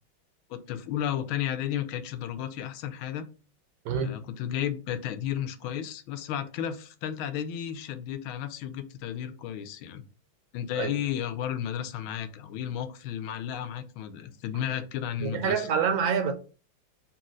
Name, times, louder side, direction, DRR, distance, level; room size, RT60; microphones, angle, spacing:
voice 1, 0.5-3.3 4.0-10.0 10.5-15.7, left 10 dB, 90° left, 1.4 m, -33 dB
voice 2, 15.2-16.3, right 7 dB, 80° right, 1.4 m, -26 dB
4.2 x 2.7 x 3.8 m
omnidirectional pair, 2.2 m